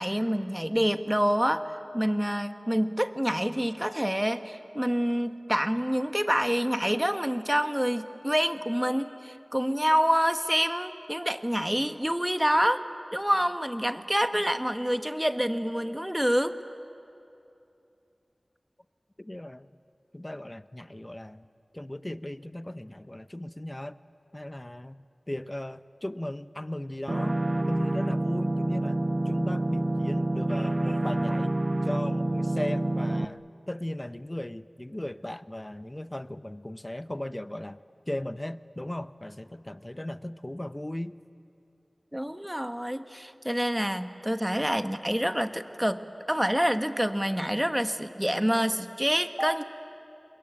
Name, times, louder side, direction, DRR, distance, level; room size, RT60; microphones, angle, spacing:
voice 1, 0.0-12.8 13.1-16.6 42.1-46.0 46.3-49.6, equal, 10° right, 9 dB, 1.2 m, -27 dB
voice 2, 19.2-19.7 20.1-21.5 21.7-24.0 24.3-27.4 27.7-31.6 31.8-37.8 38.1-41.2, left 1 dB, 25° left, 13 dB, 0.7 m, -37 dB
sound 1, 27.1-33.2, right 1 dB, 40° right, 0.6 m, -27 dB
28.5 x 21.5 x 8.8 m, 2.8 s
wide cardioid pair, 45°, 0 cm